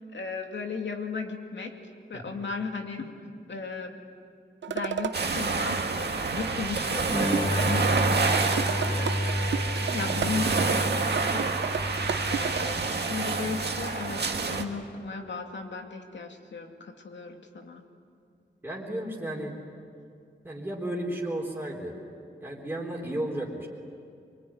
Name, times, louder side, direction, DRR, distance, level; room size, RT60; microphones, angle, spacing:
voice 1, 0.1-1.7 2.1-3.1 3.5-4.0 4.7-14.2 14.5-17.8, left 4 dB, 75° left, 3 dB, 2.6 m, -36 dB
sound 1, 4.6-5.2 7.3-8.1 8.3-12.6, right 7 dB, 80° right, 0.8 m, -32 dB
sound 2, 5.1-14.6, right 4 dB, 60° right, 1.9 m, -28 dB
sound 3, 7.1-14.6, left 1 dB, 25° left, 1.0 m, -32 dB
voice 2, 18.6-19.5 20.4-21.9 22.4-23.7, right 1 dB, 10° right, -3 dB, 3.8 m, -33 dB
24.5 x 23.5 x 9.6 m, 2.4 s
wide cardioid pair, 135°, 19 cm